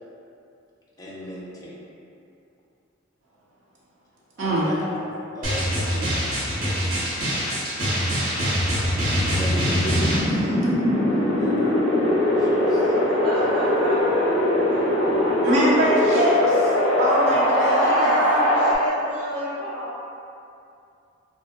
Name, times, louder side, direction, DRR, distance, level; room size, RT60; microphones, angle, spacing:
voice 1, 1.0-1.7 4.4-5.1 5.3-7.6 9.3-10.6 11.3-11.8 12.4-13.0, equal, 15° left, -5 dB, 0.4 m, -35 dB
voice 2, 4.4-4.7 15.4-16.3 17.0-18.2, right 1 dB, 60° right, -8 dB, 0.7 m, -22 dB
Drum, 5.4-10.2, equal, 85° right, 0.9 m, -24 dB
Wind, 8.7-18.7, left 1 dB, 55° left, 0.7 m, -21 dB
voice 3, 13.2-14.3 14.7-16.5 17.8-19.9, equal, 25° right, -14 dB, 0.8 m, -31 dB
2.5 x 2.2 x 3.8 m, 2.6 s
head